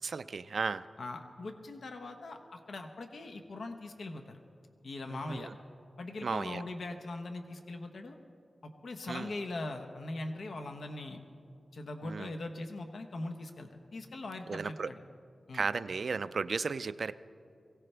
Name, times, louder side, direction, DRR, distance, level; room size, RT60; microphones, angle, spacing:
voice 1, 0.0-0.9 5.1-5.5 6.2-6.6 9.1-9.3 12.0-12.3 14.5-14.9 15.5-17.1, right 5 dB, 70° right, 14 dB, 0.4 m, -35 dB
voice 2, 1.0-4.4 4.8-5.5 6.0-8.2 8.8-11.2 11.7-15.0 15.5-15.6, left 2 dB, 80° left, 5 dB, 1.0 m, -41 dB
23.0 x 16.5 x 3.4 m, 2.4 s
wide cardioid pair, 100°, 0 cm